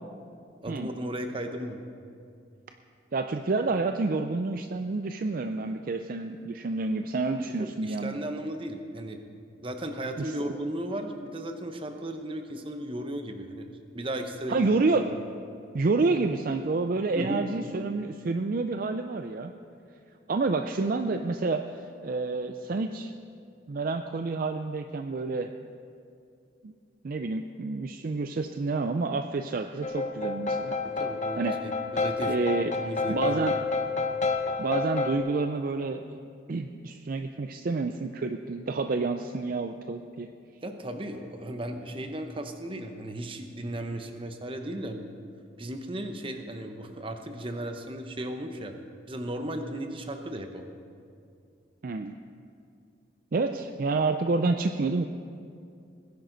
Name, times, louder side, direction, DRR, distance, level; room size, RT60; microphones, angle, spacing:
voice 1, 0.6-1.8 7.6-9.2 9.6-14.7 17.1-17.4 30.8-32.3 32.7-33.6 40.6-45.1 45.6-48.7 49.1-50.6, right 1 dB, 30° right, 6 dB, 0.9 m, -35 dB
voice 2, 3.1-8.2 10.2-10.3 14.5-15.1 15.7-19.5 20.3-23.1 23.7-25.5 26.6-26.7 27.0-30.8 31.4-31.6 32.2-32.7 33.1-33.5 34.6-40.3 51.8-52.1 53.3-55.1, right 3 dB, 50° right, 7 dB, 0.4 m, -29 dB
sound 1, 29.8-35.2, left 3 dB, 40° left, 0.9 m, -29 dB
20.5 x 10.5 x 4.0 m, 2.4 s
head